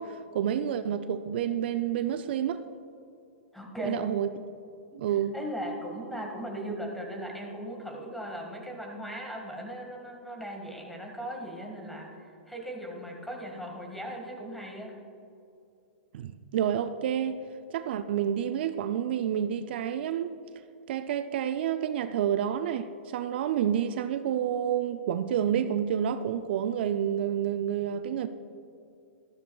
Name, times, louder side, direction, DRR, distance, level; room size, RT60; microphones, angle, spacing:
voice 1, 0.0-2.6 3.8-4.3 5.0-5.4 16.1-17.4 17.7-20.3 20.9-28.3, right 9 dB, 60° right, 0.4 m, -29 dB
voice 2, 3.5-4.1 4.9-5.0 5.3-14.9, equal, ahead, 1.7 m, -38 dB
13.0 x 12.5 x 2.3 m
hypercardioid pair, 120°, 6 cm